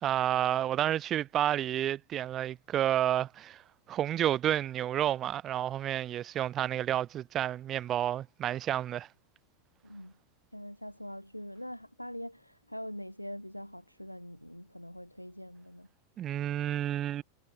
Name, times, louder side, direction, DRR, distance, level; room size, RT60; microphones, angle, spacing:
voice 1, 0.0-3.6 3.9-9.1 16.2-17.2, right 11 dB, 30° right, 0.4 m, -30 dB
voice 2, 9.8-10.1 10.5-15.9, equal, 90° left, 1.3 m, -43 dB
figure-of-eight pair, 90°, 0 cm